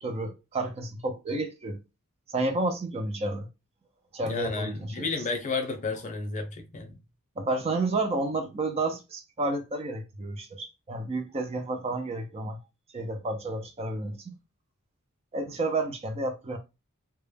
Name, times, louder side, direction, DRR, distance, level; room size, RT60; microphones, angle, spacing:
voice 1, 0.0-1.8 2.3-3.5 4.1-5.1 7.4-12.6 12.9-14.3 15.3-16.6, right 2 dB, 30° right, 0.4 m, -31 dB
voice 2, 4.2-7.0, left 4 dB, 35° left, 0.6 m, -32 dB
2.2 x 2.0 x 3.1 m
head